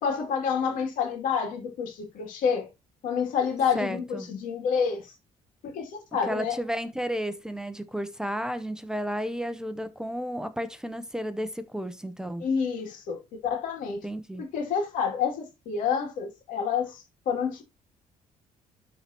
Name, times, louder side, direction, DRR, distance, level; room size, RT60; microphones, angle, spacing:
voice 1, 0.0-2.7 3.0-5.1 5.7-6.6 12.4-14.0 14.4-17.6, left 6 dB, 85° left, 2.7 m, -28 dB
voice 2, 3.7-4.3 6.3-12.4 14.0-14.5, equal, 5° right, 0.7 m, -32 dB
12.0 x 4.4 x 2.9 m
cardioid pair, 120°, 13 cm